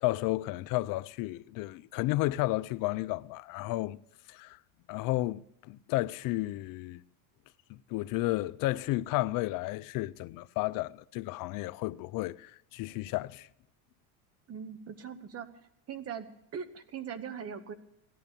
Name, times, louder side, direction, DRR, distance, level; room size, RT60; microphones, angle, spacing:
voice 1, 0.0-4.0 4.3-4.6 4.9-7.0 7.7-13.5, left 18 dB, 50° left, 0.6 m, -32 dB
voice 2, 14.5-15.5 15.9-16.3 16.5-17.7, right 7 dB, 30° right, 1.2 m, -40 dB
16.5 x 11.5 x 6.8 m
supercardioid pair, 120°, 45 cm